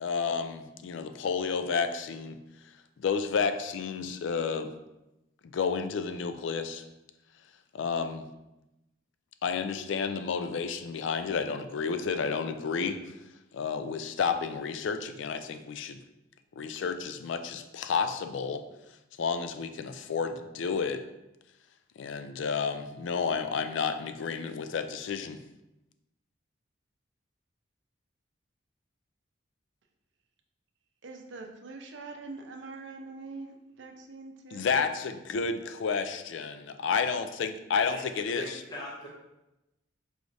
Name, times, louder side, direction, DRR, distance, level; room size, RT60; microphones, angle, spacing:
voice 1, 0.0-2.4 3.0-4.7 5.4-6.8 7.7-8.3 9.4-13.0 13.5-16.0 16.6-18.6 19.2-21.0 22.0-25.4 34.5-38.6, left 5 dB, 75° left, 9 dB, 0.3 m, -31 dB
voice 2, 31.0-34.7, right 3 dB, 70° right, 3 dB, 0.5 m, -44 dB
voice 3, 38.3-39.1, left 1 dB, 20° left, -4 dB, 0.5 m, -40 dB
4.8 x 3.2 x 2.6 m, 0.94 s
head